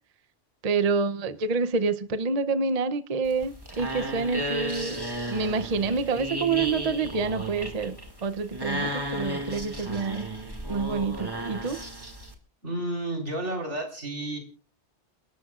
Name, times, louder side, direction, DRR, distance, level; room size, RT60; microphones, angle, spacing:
voice 1, 0.6-5.0 5.3-10.3 10.7-11.8, right 4 dB, 40° right, 0.7 m, -27 dB
sound 1, 3.2-12.3, right 1 dB, 20° right, 2.1 m, -34 dB
voice 2, 12.6-14.4, right 1 dB, 85° right, 4.5 m, -31 dB
29.5 x 12.5 x 2.4 m
omnidirectional pair, 1.2 m